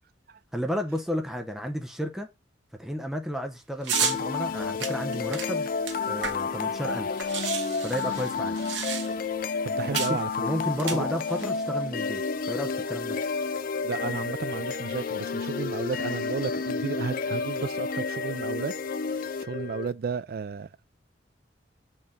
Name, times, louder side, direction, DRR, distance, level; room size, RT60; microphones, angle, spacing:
voice 1, 0.5-2.3 2.8-5.7 6.1-7.1 7.8-8.6 9.8-13.2, equal, ahead, 0.7 m, -32 dB
sound 1, 3.8-4.2 4.8-6.6 6.9-7.0 7.2-9.3 9.9-10.2 10.7-11.5, right 7 dB, 75° right, 1.2 m, -31 dB
sound 2, 3.9-19.9, left 4 dB, 50° left, 0.4 m, -30 dB
voice 2, 9.6-10.3 10.9-11.1 13.8-18.7 19.4-20.8, right 5 dB, 55° right, 0.3 m, -33 dB
6.4 x 4.5 x 3.6 m
head